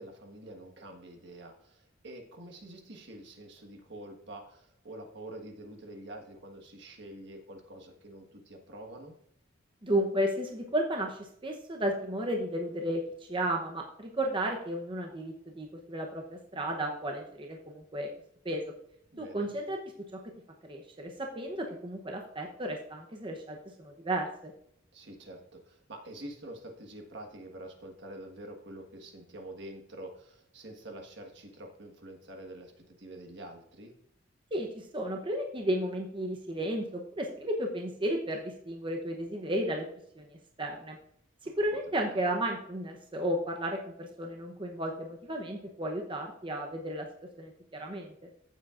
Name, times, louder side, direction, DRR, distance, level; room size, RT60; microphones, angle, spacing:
voice 1, 0.0-9.1 19.1-19.5 24.9-33.9, right 1 dB, 60° right, 4 dB, 1.5 m, -46 dB
voice 2, 9.8-18.1 18.4-18.6 19.2-20.2 20.6-24.5 34.5-39.9 40.2-41.0 41.4-47.1 47.4-48.3, right 1 dB, 25° right, 1 dB, 0.8 m, -33 dB
15.0 x 7.4 x 2.5 m, 0.72 s
head